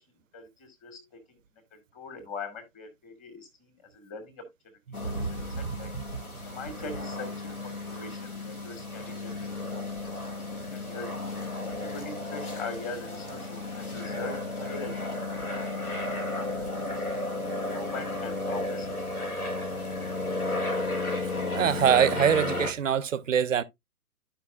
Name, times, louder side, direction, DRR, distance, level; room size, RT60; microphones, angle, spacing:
voice 1, 0.3-1.4 1.7-4.4 5.0-5.9 6.5-9.5 10.0-10.1 10.7-11.1 11.6-15.0 15.5-15.6 16.4-16.5 16.8-17.0 17.5-19.3, left 3 dB, 15° left, 2.0 m, -42 dB
sound 1, 4.9-22.7, left 2 dB, 85° left, 2.1 m, -33 dB
voice 2, 21.5-23.6, right 8 dB, 60° right, 0.8 m, -23 dB
12.5 x 5.2 x 2.3 m
figure-of-eight pair, 125°, 43 cm